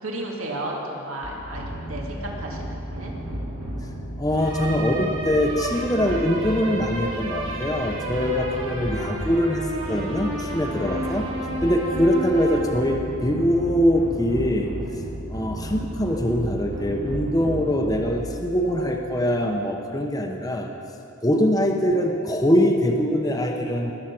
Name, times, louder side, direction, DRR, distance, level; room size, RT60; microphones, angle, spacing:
voice 1, 0.0-3.1, right 1 dB, 85° right, -1 dB, 2.2 m, -33 dB
sound 1, 1.2-18.8, right 1 dB, 65° right, 3.0 m, -32 dB
voice 2, 4.2-11.2 11.6-14.7 15.3-20.7 21.2-23.9, equal, 15° left, 2 dB, 0.9 m, -23 dB
20.5 x 8.0 x 6.1 m, 2.7 s
head